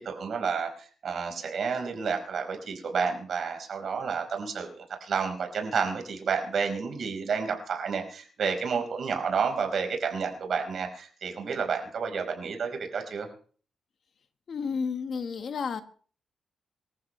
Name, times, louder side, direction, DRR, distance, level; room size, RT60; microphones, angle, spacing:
voice 1, 0.0-13.3, right 5 dB, 60° right, 4 dB, 4.7 m, -30 dB
voice 2, 14.5-15.8, left 5 dB, 55° left, 9 dB, 1.4 m, -31 dB
25.5 x 14.0 x 3.3 m, 0.43 s
cardioid pair, 120°, 0 cm